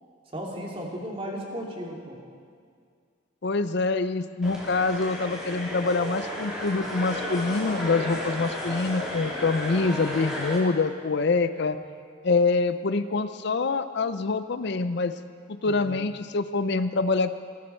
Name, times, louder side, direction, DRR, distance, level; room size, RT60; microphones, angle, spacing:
voice 1, 0.3-2.2 11.7-11.8 15.6-16.0, equal, 30° right, -2 dB, 2.5 m, -35 dB
voice 2, 3.4-11.8 12.2-15.1 15.5-17.4, left 3 dB, 55° left, 11 dB, 0.5 m, -25 dB
sound 1, 4.4-10.6, equal, 5° right, 3.6 m, -33 dB
22.5 x 13.5 x 4.5 m, 2.2 s
head